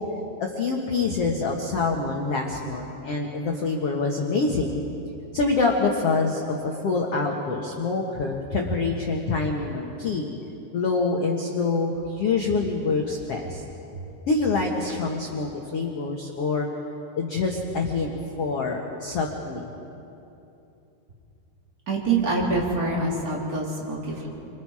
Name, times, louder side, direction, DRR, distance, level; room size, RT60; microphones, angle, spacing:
voice 1, 0.4-4.8 5.3-10.3 10.7-13.6 14.3-16.7 17.2-18.1 18.4-19.7, left 3 dB, 60° left, 0 dB, 1.7 m, -26 dB
voice 2, 21.9-24.3, right 3 dB, 20° right, -3 dB, 3.7 m, -25 dB
30.0 x 25.5 x 4.9 m, 2.8 s
omnidirectional pair, 4.9 m